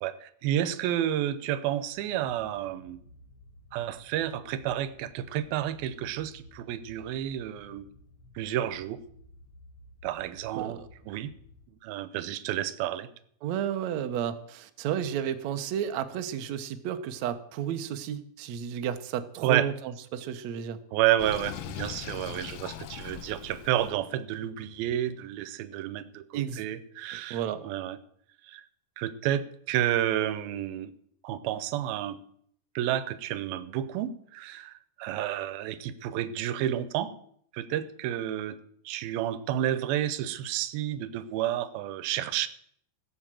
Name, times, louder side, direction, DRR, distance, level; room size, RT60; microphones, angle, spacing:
voice 1, 0.0-3.0 3.7-7.9 8.4-9.0 10.0-10.8 11.1-11.3 11.8-13.1 19.4-19.7 20.9-28.0 28.4-28.7 29.0-30.9 31.2-32.2 32.8-37.2 37.5-38.6 38.9-42.5, right 12 dB, 90° right, 14 dB, 2.7 m, -30 dB
sound 1, 1.9-11.7, left 1 dB, 40° left, 2.6 m, -54 dB
voice 2, 10.5-10.9 13.4-20.8 26.3-26.6 27.3-27.6, right 9 dB, 65° right, 9 dB, 1.9 m, -32 dB
Sink (filling or washing), 21.2-23.9, left 10 dB, 90° left, 2.8 m, -40 dB
16.5 x 7.8 x 7.5 m, 0.65 s
omnidirectional pair, 4.2 m